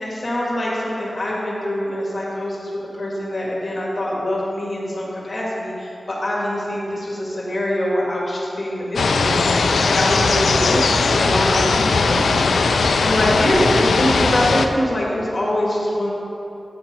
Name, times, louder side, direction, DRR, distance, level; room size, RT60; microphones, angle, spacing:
voice 1, 0.0-2.7 3.0-9.4 9.9-12.4 13.0-16.1, left 1 dB, 45° left, -5 dB, 1.9 m, -24 dB
sound 1, 9.0-14.7, left 4 dB, 90° left, 0.4 m, -18 dB
9.1 x 5.9 x 5.1 m, 2.8 s
wide cardioid pair, 70°, 0 cm